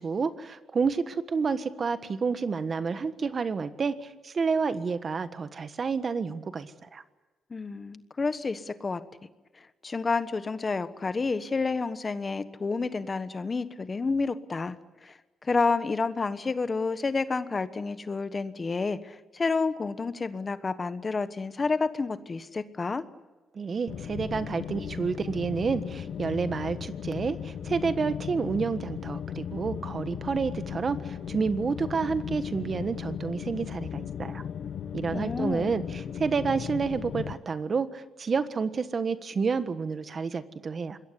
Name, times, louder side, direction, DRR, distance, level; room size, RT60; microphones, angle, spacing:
voice 1, 0.0-7.0 23.5-34.4 34.9-41.0, right 5 dB, 40° right, 11 dB, 1.4 m, -29 dB
voice 2, 7.5-9.0 9.6-14.8 15.0-23.0 35.1-35.8, left 4 dB, 30° left, 12 dB, 1.2 m, -30 dB
sound 1, 23.9-37.3, left 8 dB, 65° left, 1.0 m, -36 dB
26.0 x 21.0 x 9.9 m, 1.2 s
cardioid pair, 100°, 0 cm